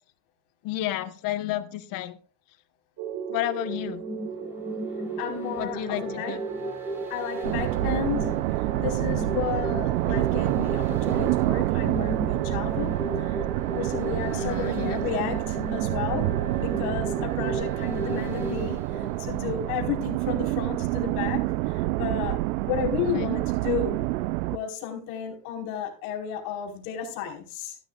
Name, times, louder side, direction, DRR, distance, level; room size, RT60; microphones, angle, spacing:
voice 1, 0.6-2.2 3.3-4.0 5.6-6.4 14.3-15.0 23.1-23.4, left 14 dB, 45° left, 10 dB, 1.5 m, -31 dB
sound 1, 3.0-18.5, right 8 dB, 45° right, 3.4 m, -38 dB
sound 2, 3.7-20.0 20.3-20.4, equal, 5° right, 5.3 m, -36 dB
voice 2, 5.2-6.3 7.1-12.9 13.2-13.4 13.7-16.3 16.6-24.0 24.5-27.8, left 8 dB, 70° left, 2 dB, 4.9 m, -33 dB
sound 3, 7.4-24.6, right 18 dB, 80° right, 0.7 m, -27 dB
16.0 x 12.5 x 2.5 m, 0.39 s
supercardioid pair, 135°, 45 cm